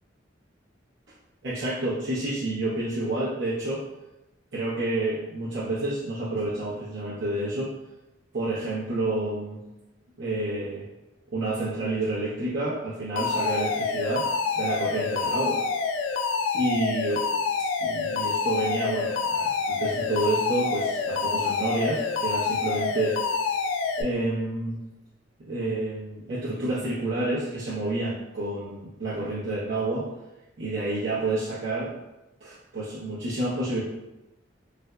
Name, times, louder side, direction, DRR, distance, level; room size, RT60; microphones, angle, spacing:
voice 1, 1.4-3.8 4.5-7.7 8.3-9.6 10.2-10.9 11.3-14.3 14.6-15.6 16.5-17.3 17.8-23.2 24.0-24.8 25.4-30.1 30.6-31.9 32.4-33.8, right 2 dB, 65° right, -10 dB, 0.8 m, -29 dB
Alarm, 13.2-24.0, left 5 dB, 80° left, 0.3 m, -27 dB
3.3 x 2.5 x 2.2 m, 0.97 s
head